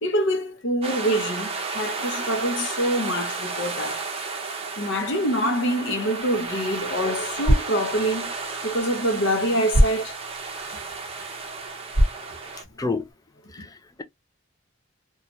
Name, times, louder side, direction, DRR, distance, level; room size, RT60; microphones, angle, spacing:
voice 1, 0.0-4.1 4.8-8.3 8.6-10.2 10.9-11.0, equal, 60° left, 0.8 m, -25 dB
sound 1, 0.8-12.6, right 4 dB, 30° right, 0.6 m, -33 dB
sound 2, 6.2-13.1, equal, 80° left, 1.1 m, -27 dB
voice 2, 13.5-14.0, left 3 dB, 20° left, 0.4 m, -29 dB
2.7 x 2.3 x 2.9 m
head